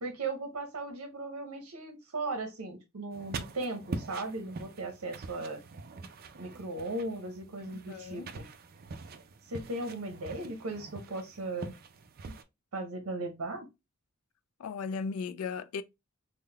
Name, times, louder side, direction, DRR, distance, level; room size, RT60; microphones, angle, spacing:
voice 1, 0.0-5.6 6.4-8.5 9.5-11.7 12.7-13.7, right 2 dB, 70° right, 0.8 m, -37 dB
sound 1, 3.1-12.4, right 3 dB, 45° right, 0.4 m, -44 dB
voice 2, 7.9-8.3 14.6-15.8, left 5 dB, 75° left, 0.3 m, -36 dB
3.7 x 2.1 x 3.3 m
head